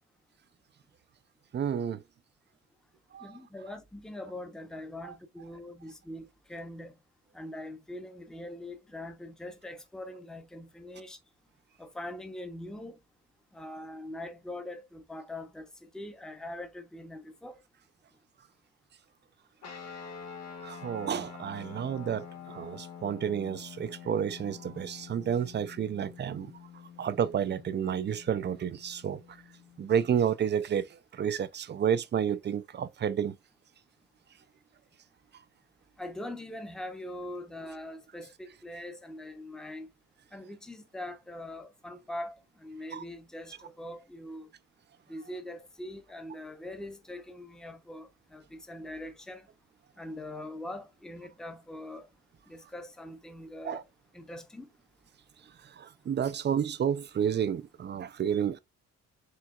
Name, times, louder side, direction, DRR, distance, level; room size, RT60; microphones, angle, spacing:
voice 1, 1.5-2.0 3.1-3.3 5.0-5.1 20.6-26.5 27.0-29.2 29.8-33.4 42.9-43.0 53.6-53.8 55.8-58.6, right 8 dB, 35° right, 0.4 m, -30 dB
voice 2, 3.2-6.9 7.3-11.2 11.8-13.0 13.5-17.6 36.0-39.9 40.3-42.3 42.6-44.5 45.1-49.4 50.0-52.1 52.5-53.8 54.1-54.7, left 1 dB, ahead, 0.8 m, -42 dB
sound 1, 19.6-30.3, left 7 dB, 60° left, 1.5 m, -47 dB
4.7 x 3.3 x 2.3 m
cardioid pair, 90°, 30 cm